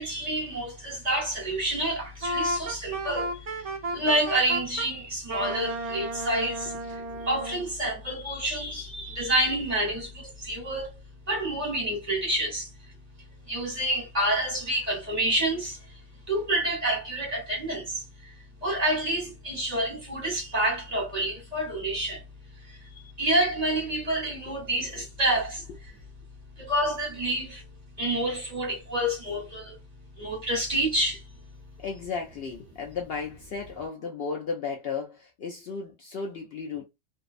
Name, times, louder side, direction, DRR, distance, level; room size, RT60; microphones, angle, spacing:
voice 1, 0.0-6.7 7.2-11.0 11.3-12.7 13.4-15.8 16.3-18.3 18.6-22.2 23.2-25.6 26.6-27.6 28.0-29.8 30.2-31.2, right 1 dB, 35° right, 1.2 m, -28 dB
Wind instrument woodwind instrument, 2.2-4.9 5.3-7.7, right 1 dB, 55° right, 0.4 m, -33 dB
voice 2, 6.9-7.3 24.9-25.1 31.8-36.9, left 5 dB, 60° left, 0.7 m, -35 dB
2.6 x 2.0 x 2.4 m
omnidirectional pair, 1.3 m